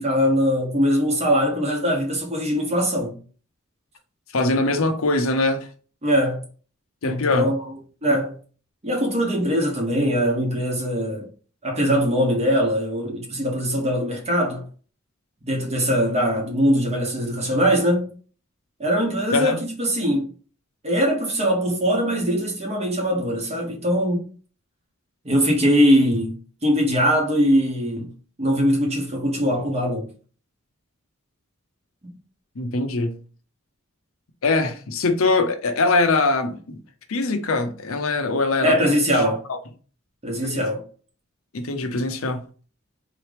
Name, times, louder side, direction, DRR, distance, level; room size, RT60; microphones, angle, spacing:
voice 1, 0.0-3.2 6.0-6.4 7.0-7.7 8.0-8.4 8.8-11.3 11.6-14.6 15.4-18.1 18.8-20.3 20.8-24.2 25.2-26.4 26.6-28.1 28.4-30.0 38.6-39.4 40.2-40.8, equal, 30° right, 1.0 m, -21 dB
voice 2, 4.3-5.7 7.0-7.5 19.3-19.6 32.6-33.2 34.4-36.8 37.1-39.6 40.4-40.7 41.5-42.5, left 3 dB, 70° left, 0.7 m, -22 dB
3.6 x 3.0 x 3.3 m
head